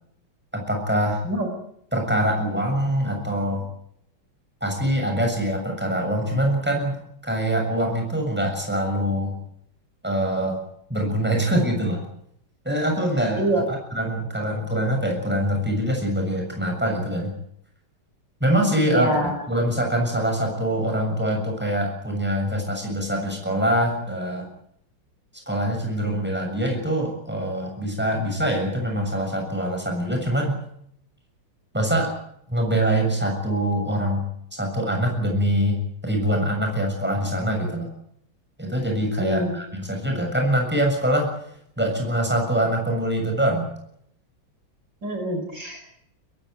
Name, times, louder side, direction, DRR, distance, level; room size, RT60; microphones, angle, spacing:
voice 1, 0.5-1.2 1.9-3.7 4.6-9.3 10.0-10.6 10.9-12.0 12.7-17.3 18.4-24.5 25.5-30.6 31.7-32.1 32.5-34.2 34.5-37.9 38.6-41.3 41.8-43.7, right 1 dB, 5° right, 2 dB, 7.0 m, -24 dB
voice 2, 18.9-19.3 39.2-39.5 45.0-45.8, right 1 dB, 60° right, 4 dB, 5.4 m, -25 dB
23.0 x 15.5 x 9.6 m, 0.71 s
omnidirectional pair, 2.3 m